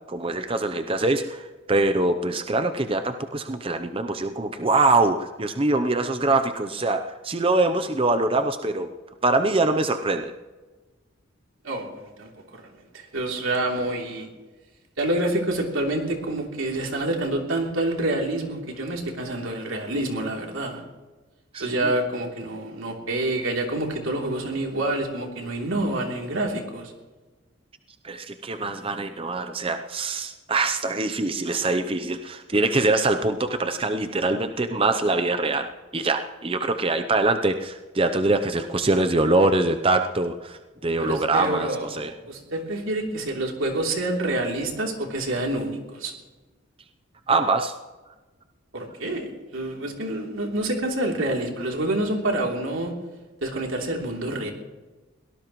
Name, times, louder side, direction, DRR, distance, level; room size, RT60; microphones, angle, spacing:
voice 1, 0.1-8.9 9.2-10.3 21.5-21.9 28.0-35.7 35.9-42.1 47.3-47.7, right 2 dB, 25° right, 8 dB, 0.7 m, -23 dB
voice 2, 11.6-12.7 12.9-14.3 15.0-20.8 21.6-26.9 41.0-46.1 48.7-52.9 53.4-54.5, right 1 dB, 85° right, 1 dB, 3.2 m, -27 dB
23.5 x 18.0 x 3.1 m, 1.2 s
head